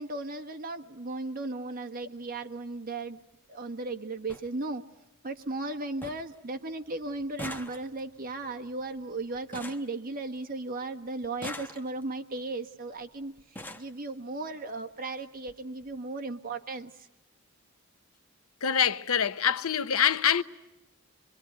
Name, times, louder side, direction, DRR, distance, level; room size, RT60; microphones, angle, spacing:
voice 1, 0.0-3.2 3.5-4.8 5.2-13.3 13.8-17.1, right 2 dB, 45° right, 1.5 m, -36 dB
sound 1, 2.2-2.4 3.6-3.7 3.9-4.0 4.3-4.5 4.9-5.4 5.7-5.8 6.0-6.4 6.7-10.6 11.2-12.2 13.0-13.1 13.4-14.0 14.9-15.0 15.3-15.5 15.8-15.9, left 1 dB, 10° left, 1.1 m, -44 dB
voice 2, 18.6-20.4, left 8 dB, 80° left, 0.9 m, -25 dB
24.5 x 23.5 x 9.4 m
head